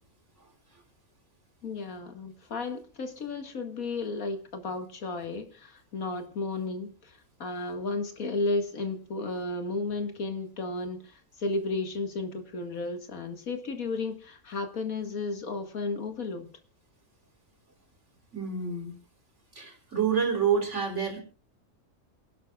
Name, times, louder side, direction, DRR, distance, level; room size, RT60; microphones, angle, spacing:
voice 1, 1.6-16.5, left 3 dB, 85° left, 2.3 m, -33 dB
voice 2, 18.3-19.0 19.5-21.2, right 6 dB, 55° right, 4.2 m, -28 dB
28.0 x 12.0 x 2.4 m
omnidirectional pair, 1.4 m